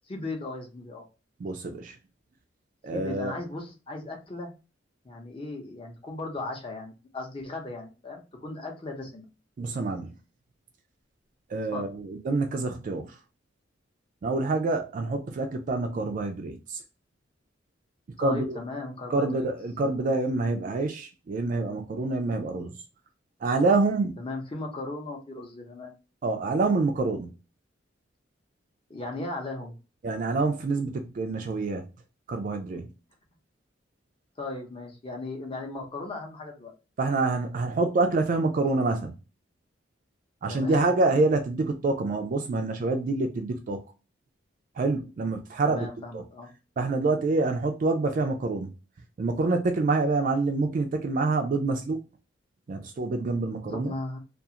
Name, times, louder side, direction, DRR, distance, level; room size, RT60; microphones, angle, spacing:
voice 1, 0.1-1.0 2.9-4.5 5.0-9.3 11.7-11.9 18.2-19.5 24.2-25.9 28.9-29.8 34.4-36.7 40.5-40.9 45.6-46.5 53.7-54.2, left 2 dB, 30° left, 0.7 m, -37 dB
voice 2, 1.4-1.9 2.8-3.3 9.6-10.1 11.5-13.1 14.2-16.8 18.2-18.6 19.1-22.7 23.4-24.2 26.2-27.3 30.0-31.8 32.3-32.9 37.0-39.1 40.4-43.8 44.8-45.9 46.1-46.2 46.8-48.7 49.2-52.0 52.7-53.9, right 3 dB, 45° right, 0.3 m, -26 dB
2.4 x 2.4 x 2.7 m
head